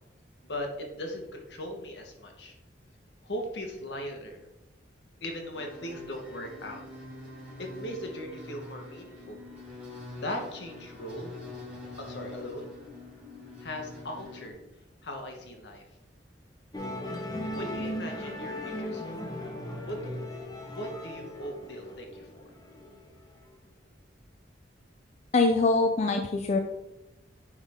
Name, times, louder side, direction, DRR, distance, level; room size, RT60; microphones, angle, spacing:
voice 1, 0.4-2.5 3.2-4.4 5.2-6.8 7.6-9.4 10.2-11.3 12.0-12.7 13.6-14.6 15.0-15.8 17.5-19.2 19.8-20.0 20.7-22.2, left 1 dB, 70° left, 2 dB, 1.2 m, -38 dB
sound 1, 5.5-14.5, left 2 dB, 10° right, 2.3 m, -45 dB
Musical instrument, 16.7-23.3, left 1 dB, 20° left, 0.9 m, -37 dB
voice 2, 25.3-26.6, left 3 dB, 40° left, 4 dB, 0.4 m, -23 dB
9.4 x 3.6 x 3.6 m, 0.96 s
head